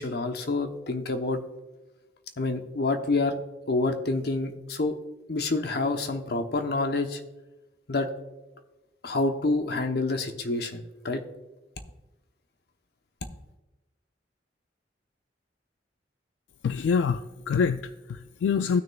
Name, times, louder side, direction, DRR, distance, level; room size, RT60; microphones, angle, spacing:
voice 1, 0.0-1.4 2.4-3.4 3.7-5.0 5.3-7.2 7.9-8.1 9.0-11.2, left 3 dB, 60° left, 6 dB, 0.8 m, -27 dB
voice 2, 16.6-18.8, left 6 dB, 80° left, 10 dB, 0.3 m, -26 dB
16.0 x 6.4 x 2.3 m, 1.1 s
head